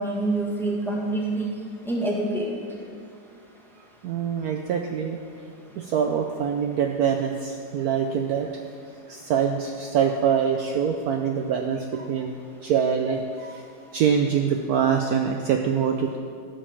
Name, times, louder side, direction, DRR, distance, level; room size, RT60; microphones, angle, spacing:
voice 1, 0.0-1.5 1.8-2.5, right 2 dB, ahead, -3 dB, 1.5 m, -26 dB
voice 2, 4.0-5.2 5.8-8.5 9.1-13.6 13.9-16.2, right 7 dB, 65° right, 3 dB, 1.0 m, -24 dB
12.0 x 5.3 x 7.2 m, 2.1 s
omnidirectional pair, 1.9 m